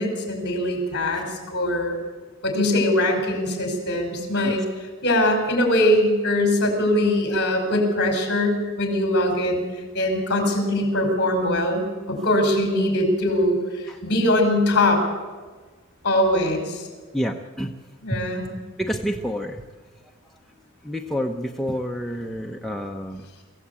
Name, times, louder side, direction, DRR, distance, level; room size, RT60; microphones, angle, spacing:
voice 1, 0.0-2.0 2.4-4.6 5.0-9.6 9.9-13.6 14.0-15.0 16.0-16.9 18.0-18.5, left 1 dB, 50° left, 3 dB, 5.3 m, -22 dB
voice 2, 17.1-17.7 18.1-18.3 18.8-19.6 20.8-23.2, equal, ahead, 1 dB, 0.8 m, -28 dB
23.5 x 15.5 x 8.4 m, 1.4 s
head